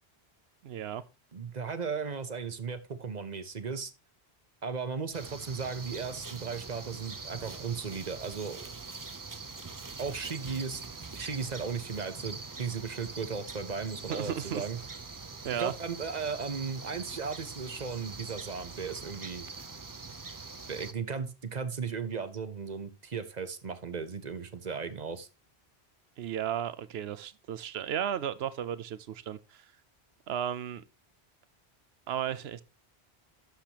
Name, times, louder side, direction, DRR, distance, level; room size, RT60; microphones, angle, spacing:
voice 1, 0.6-1.0 14.1-14.7 15.4-15.7 26.2-29.6 30.3-30.8 32.1-32.6, right 9 dB, 75° right, 0.9 m, -34 dB
voice 2, 1.3-3.9 4.6-8.7 10.0-10.8 11.1-14.8 15.5-19.5 20.7-25.3, right 5 dB, 45° right, 0.9 m, -36 dB
sound 1, 5.1-20.9, right 4 dB, 25° right, 0.4 m, -43 dB
11.5 x 6.7 x 2.9 m
omnidirectional pair, 1.1 m